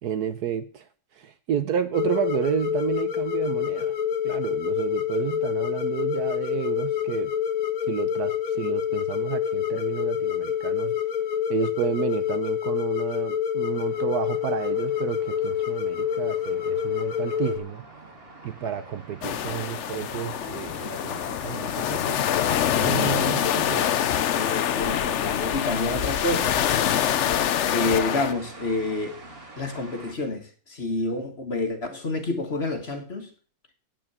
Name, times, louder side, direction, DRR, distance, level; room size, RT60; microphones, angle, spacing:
voice 1, 0.0-0.9 1.2-3.9 4.2-7.3 7.9-10.9 11.5-17.8 18.4-22.2 22.7-23.9, right 9 dB, 65° right, 1.2 m, -31 dB
sound 1, 1.9-17.6, left 9 dB, 50° left, 1.4 m, -27 dB
sound 2, 13.7-30.1, right 2 dB, 30° right, 2.3 m, -45 dB
sound 3, 19.2-28.3, left 10 dB, 80° left, 0.6 m, -25 dB
voice 2, 24.3-26.6 27.7-29.2 29.6-33.3, left 2 dB, 35° left, 1.6 m, -28 dB
8.9 x 8.7 x 6.9 m
omnidirectional pair, 2.0 m